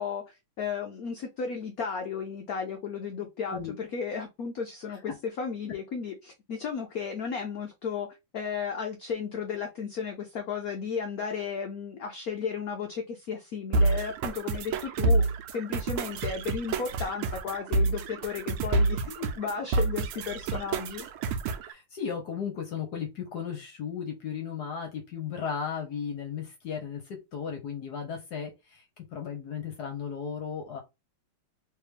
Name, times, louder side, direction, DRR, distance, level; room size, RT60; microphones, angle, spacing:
voice 1, 0.0-5.1 5.4-8.1 8.3-21.1, left 6 dB, 90° left, 4 dB, 0.7 m, -34 dB
sound 1, 13.7-21.7, right 3 dB, 90° right, 1.5 m, -28 dB
voice 2, 21.6-30.8, left 7 dB, 65° left, 4 dB, 1.1 m, -35 dB
3.4 x 3.2 x 3.3 m, 0.23 s
omnidirectional pair, 2.3 m